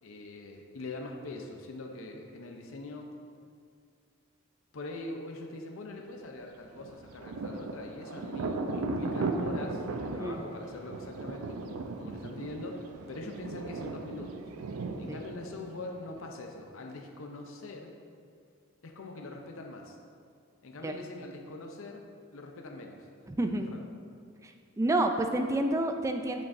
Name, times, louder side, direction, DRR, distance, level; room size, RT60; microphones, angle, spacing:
voice 1, 0.0-3.1 4.7-14.4 15.0-17.9 18.8-20.0 20.6-22.0 22.3-23.1 23.7-23.8, left 2 dB, 65° left, 2 dB, 0.6 m, -43 dB
Thunder, 6.8-16.3, right 3 dB, 90° right, 0.5 m, -37 dB
voice 2, 23.3-23.7 24.4-26.4, right 1 dB, 15° right, 6 dB, 0.3 m, -29 dB
8.7 x 6.0 x 2.6 m, 2.3 s
head